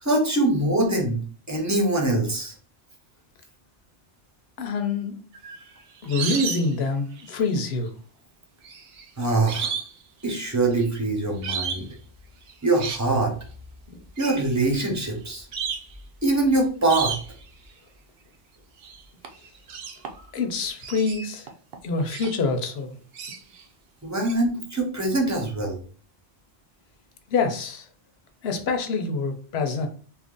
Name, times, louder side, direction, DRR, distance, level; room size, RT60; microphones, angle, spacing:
voice 1, 0.0-1.2 1.5-2.5 9.2-9.7 10.2-11.9 12.6-13.3 14.2-15.4 16.2-17.2 24.0-25.8, right 2 dB, 15° right, 1 dB, 0.8 m, -23 dB
voice 2, 4.6-5.2 6.0-7.9 13.9-14.0 20.3-21.5 21.8-23.0 27.3-27.9 28.4-29.9, left 3 dB, 75° left, 6 dB, 0.9 m, -26 dB
sound 1, 5.3-6.8 7.1-7.7 8.6-10.0 10.3-10.9 11.4-11.9 12.5-13.1 14.2-14.4 15.0-15.1 15.5-15.9 16.9-17.5 18.8-19.0 19.2-20.4 20.8-22.4 23.1-23.6 24.2-24.4, right 6 dB, 70° right, 0.8 m, -33 dB
2.8 x 2.6 x 3.7 m, 0.41 s
omnidirectional pair, 1.1 m